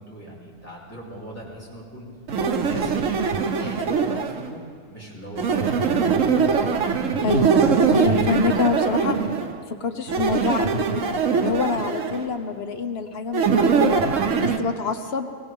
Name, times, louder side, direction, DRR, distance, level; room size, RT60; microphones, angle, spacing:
voice 1, 0.0-2.1 2.5-4.6 4.9-6.6, equal, 10° left, -7 dB, 3.6 m, -39 dB
sound 1, 2.3-4.5 5.4-9.5 10.1-12.3 13.3-14.6, right 5 dB, 80° right, 1.2 m, -22 dB
voice 2, 7.2-7.6 7.9-9.2 9.7-11.1 11.4-14.0 14.4-15.3, left 5 dB, 55° left, 7 dB, 1.0 m, -26 dB
23.0 x 16.5 x 3.6 m, 2.2 s
omnidirectional pair, 1.3 m